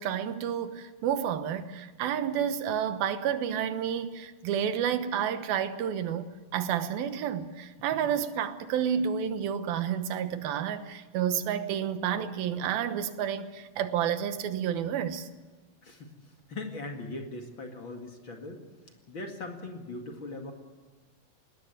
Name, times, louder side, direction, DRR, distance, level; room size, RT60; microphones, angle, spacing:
voice 1, 0.0-15.3, right 9 dB, 90° right, 3.0 m, -30 dB
voice 2, 15.8-18.6 19.1-20.5, left 2 dB, 40° left, 2.4 m, -40 dB
20.0 x 17.5 x 9.2 m
omnidirectional pair, 4.1 m